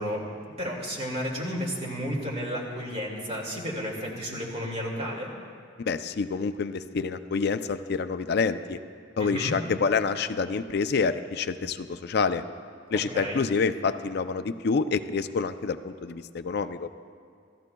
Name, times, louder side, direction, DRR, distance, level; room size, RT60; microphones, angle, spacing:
voice 1, 0.0-5.3 9.2-9.6 12.9-13.5, equal, 35° right, -1 dB, 2.2 m, -32 dB
voice 2, 5.9-8.8 9.2-12.4 12.9-16.9, left 5 dB, 60° left, 10 dB, 0.4 m, -27 dB
26.5 x 14.0 x 2.3 m, 2.2 s
head